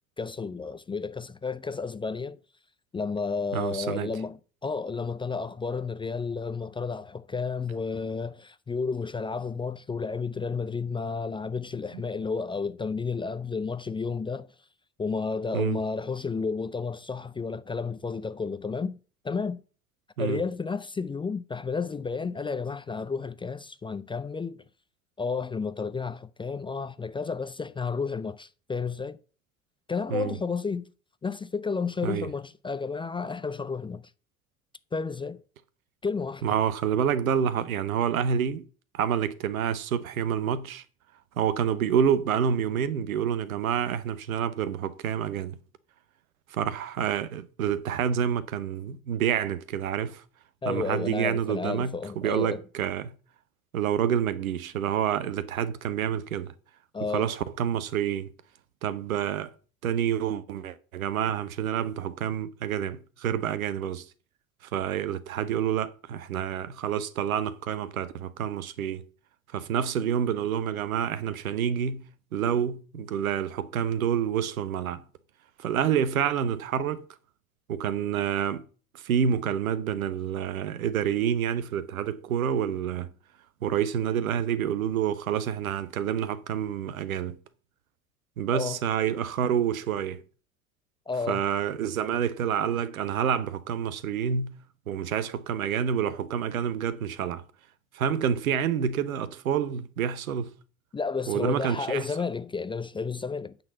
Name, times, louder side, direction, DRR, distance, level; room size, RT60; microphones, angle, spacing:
voice 1, 0.2-2.4 2.9-14.5 15.0-19.0 19.2-19.6 20.2-24.6 25.2-29.2 29.9-30.9 31.2-34.0 34.9-35.4 36.0-36.4 50.6-52.6 56.9-57.3 88.5-88.8 91.1-91.4 100.9-103.6, left 5 dB, 15° left, 0.4 m, -32 dB
voice 2, 3.5-4.1 11.9-12.0 15.5-15.8 20.2-20.4 30.1-30.4 32.0-32.3 36.4-38.6 38.9-40.8 41.4-45.6 46.5-50.2 50.7-53.1 53.7-56.5 57.1-58.3 58.8-59.5 59.8-64.1 64.7-69.0 69.5-72.0 72.3-75.0 75.6-77.0 77.7-78.6 78.9-83.1 83.6-87.4 88.4-90.2 91.3-94.5 94.9-97.4 97.9-100.5 101.3-102.1, right 8 dB, 80° right, 0.8 m, -28 dB
8.8 x 3.9 x 6.8 m
figure-of-eight pair, 65°, 41 cm